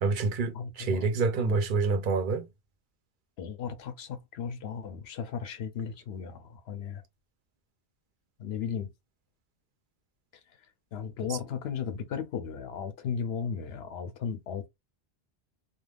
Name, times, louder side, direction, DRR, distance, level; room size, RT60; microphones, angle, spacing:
voice 1, 0.0-2.5, right 4 dB, 60° right, 0.7 m, -27 dB
voice 2, 0.5-1.1 1.3-1.6 3.4-7.0 8.4-8.9 10.9-14.7, left 7 dB, 85° left, 0.9 m, -35 dB
3.3 x 2.3 x 2.3 m
omnidirectional pair, 1.0 m